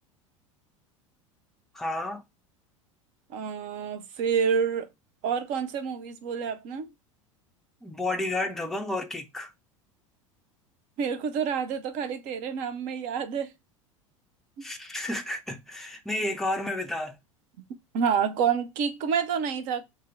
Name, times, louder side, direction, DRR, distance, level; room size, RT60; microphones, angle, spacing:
voice 1, 1.7-2.2 7.8-9.5 14.6-17.2, left 2 dB, ahead, 0.5 m, -31 dB
voice 2, 3.3-4.9 5.2-6.9 11.0-13.5 14.6-14.7 17.9-19.8, right 7 dB, 45° right, 0.6 m, -28 dB
2.7 x 2.1 x 3.5 m
figure-of-eight pair, 75°, 17 cm